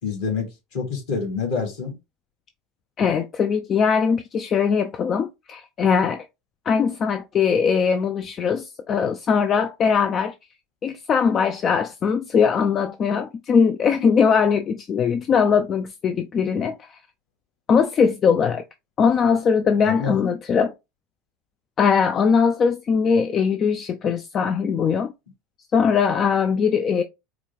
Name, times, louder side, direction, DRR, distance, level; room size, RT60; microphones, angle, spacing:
voice 1, 0.0-1.9 19.8-20.1, left 5 dB, 65° left, 2.0 m, -27 dB
voice 2, 3.0-6.3 6.7-10.3 10.8-17.0 17.7-18.6 19.0-20.7 21.8-25.1 25.7-27.0, left 6 dB, 40° left, 0.4 m, -21 dB
4.8 x 2.3 x 3.4 m
hypercardioid pair, 75°, 0 cm